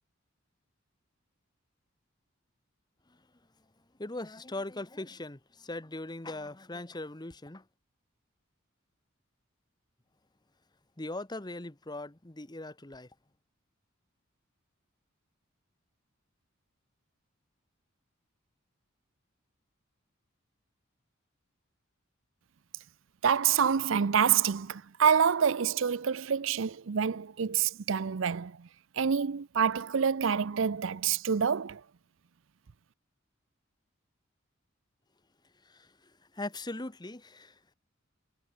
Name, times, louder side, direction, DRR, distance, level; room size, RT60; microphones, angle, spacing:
voice 1, 4.0-7.6 11.0-13.1 35.6-37.6, left 2 dB, 20° left, 1.1 m, -40 dB
voice 2, 23.2-28.7 29.0-31.8, right 7 dB, 65° right, 0.5 m, -27 dB
head